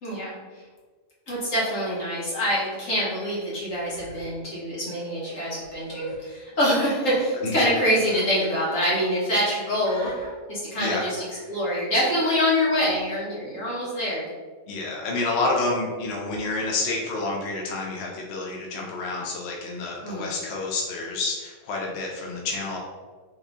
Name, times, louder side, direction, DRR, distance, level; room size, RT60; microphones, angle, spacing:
voice 1, 0.0-0.6 1.3-10.1 10.5-11.2 11.5-14.3 20.0-20.3, equal, 85° left, -6 dB, 1.9 m, -25 dB
Human voice, 1.6-3.4 3.7-4.3 5.0-6.2 6.9-7.2 8.0-8.2 8.5-8.8 9.8-10.3 11.1-11.7 12.7-13.0, left 1 dB, 25° left, 1.4 m, -44 dB
voice 2, 14.7-22.8, left 3 dB, 60° left, -1 dB, 0.9 m, -29 dB
3.9 x 3.6 x 3.5 m, 1.5 s
omnidirectional pair, 1.3 m